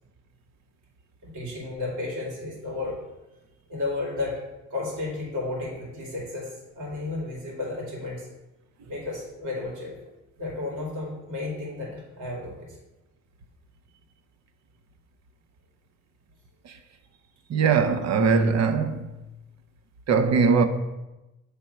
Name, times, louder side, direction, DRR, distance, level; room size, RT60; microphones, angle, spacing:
voice 1, 1.2-3.0 3.7-4.4 4.7-8.3 8.9-10.0 10.4-12.8, left 2 dB, 80° right, 2.2 m, -33 dB
voice 2, 17.5-19.1 20.1-20.6, right 5 dB, 60° right, 0.7 m, -21 dB
7.8 x 3.5 x 4.3 m
cardioid pair, 90°, 30 cm